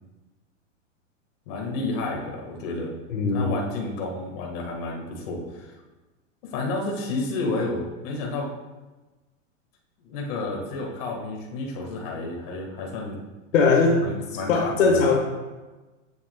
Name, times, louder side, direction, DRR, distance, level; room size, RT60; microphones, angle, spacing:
voice 1, 1.5-2.9 3.3-5.7 6.4-8.5 10.0-13.2 14.0-15.0, left 2 dB, 45° left, -1 dB, 1.7 m, -31 dB
voice 2, 3.1-3.6 13.5-14.0 14.5-15.2, left 4 dB, 75° left, 1 dB, 1.5 m, -20 dB
7.6 x 6.9 x 2.3 m, 1.2 s
hypercardioid pair, 135°, 39 cm